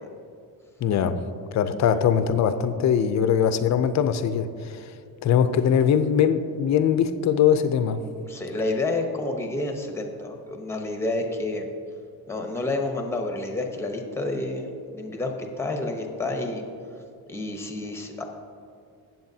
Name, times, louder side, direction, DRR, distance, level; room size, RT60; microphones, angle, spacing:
voice 1, 0.8-1.2 1.5-4.5 5.2-8.0, left 8 dB, 50° left, 11 dB, 0.5 m, -21 dB
voice 2, 8.3-11.6 12.3-16.6 17.3-18.2, left 2 dB, 5° left, 3 dB, 0.8 m, -29 dB
16.5 x 7.6 x 2.7 m, 2.4 s
cardioid pair, 175°, 37 cm